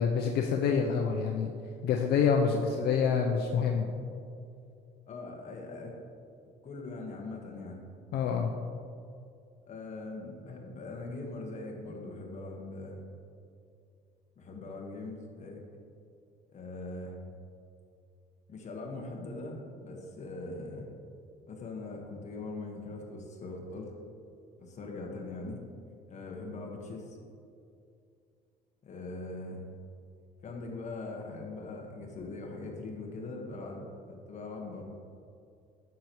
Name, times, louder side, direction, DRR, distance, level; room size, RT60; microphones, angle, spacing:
voice 1, 0.0-1.5 1.8-3.9 8.1-8.5, left 6 dB, 70° left, 2 dB, 0.6 m, -27 dB
voice 2, 5.1-6.0 6.6-7.8 9.7-13.0 14.4-15.6 16.5-17.2 18.5-20.9 21.5-23.9 24.6-25.7 26.1-27.2 28.8-29.6 30.4-34.8, left 2 dB, 45° left, 1 dB, 1.4 m, -41 dB
9.3 x 6.9 x 3.1 m, 2.5 s
cardioid pair, 110°, 17 cm